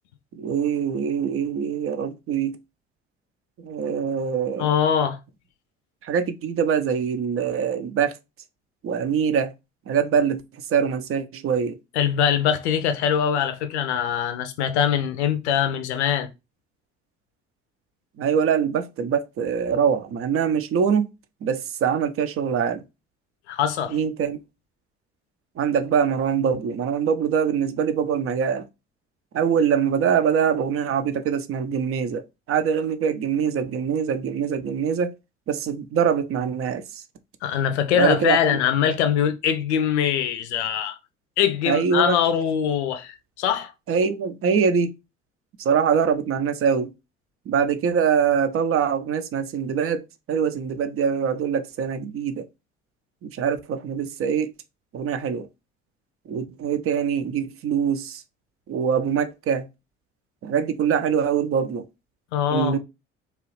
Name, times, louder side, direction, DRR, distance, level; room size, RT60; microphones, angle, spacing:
voice 1, 0.3-2.6 3.6-4.7 6.0-8.1 8.8-9.5 9.9-10.4 10.7-11.8 18.2-21.1 21.4-22.8 23.9-24.4 25.6-28.6 29.3-32.2 32.5-35.1 35.5-37.0 37.9-38.4 41.6-42.2 43.9-44.9 45.6-46.9 47.5-52.4 53.2-54.5 54.9-55.5 56.3-58.2 58.7-59.7 60.4-61.8 62.5-62.8, right 7 dB, 40° right, 0.5 m, -23 dB
voice 2, 4.6-5.2 11.9-16.3 23.5-24.0 37.4-41.0 41.4-43.7 62.3-62.8, left 8 dB, 80° left, 0.5 m, -22 dB
2.9 x 2.3 x 3.1 m
hypercardioid pair, 50°, 33 cm